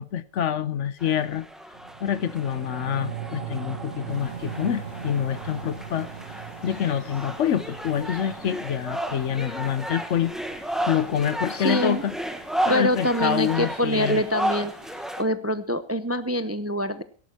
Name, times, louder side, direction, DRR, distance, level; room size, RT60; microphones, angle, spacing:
voice 1, 0.0-1.5 2.0-6.1 6.6-10.3 10.9-12.1 12.6-14.2, left 9 dB, 65° left, 1.1 m, -26 dB
sound 1, 1.0-15.2, right 1 dB, ahead, 1.4 m, -33 dB
sound 2, 1.7-12.3 12.7-12.8, right 8 dB, 70° right, 1.3 m, -40 dB
sound 3, 4.1-15.1, equal, 40° left, 6.2 m, -50 dB
voice 2, 11.5-12.0 12.7-14.7 15.2-17.0, equal, 15° right, 0.5 m, -25 dB
17.5 x 11.5 x 4.4 m
omnidirectional pair, 1.4 m